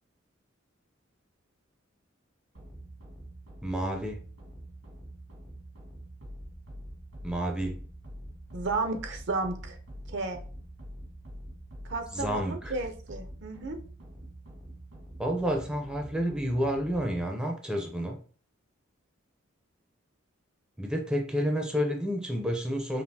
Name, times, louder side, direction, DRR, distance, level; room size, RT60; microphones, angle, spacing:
sound 1, 2.5-17.2, equal, 85° right, 1.6 m, -45 dB
voice 1, 3.6-4.2 7.2-7.8 12.1-12.7 15.2-18.2 20.8-23.0, equal, 5° right, 1 dB, 0.5 m, -30 dB
voice 2, 8.5-9.8 10.1-10.4 11.8-13.8, right 3 dB, 60° right, 6 dB, 0.6 m, -33 dB
5.2 x 2.5 x 2.7 m, 0.42 s
head